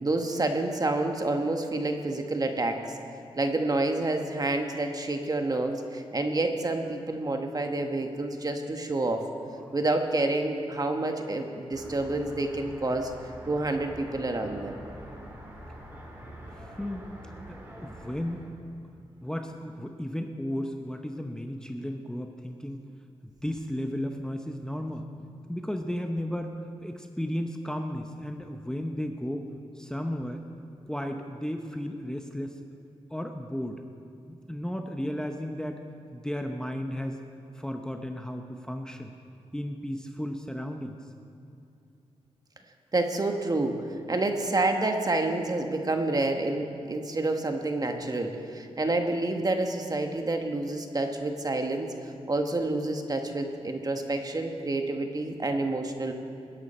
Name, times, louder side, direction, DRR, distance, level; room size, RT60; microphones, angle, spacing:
voice 1, 0.0-2.9 3.4-9.2 9.7-13.1 13.4-14.8 42.9-51.9 52.3-56.1, right 2 dB, 35° right, 4 dB, 1.4 m, -28 dB
sound 1, 11.7-18.5, equal, 15° right, 3.4 m, -45 dB
voice 2, 16.6-17.1 17.5-18.5 19.2-22.8 23.2-25.1 25.5-26.5 26.8-29.5 29.8-30.4 30.9-32.6 33.1-33.8 34.3-35.8 36.1-37.2 37.5-39.1 39.5-41.0, equal, 5° left, 4 dB, 0.9 m, -34 dB
20.0 x 11.0 x 4.3 m, 2.6 s
cardioid pair, 70°, 11 cm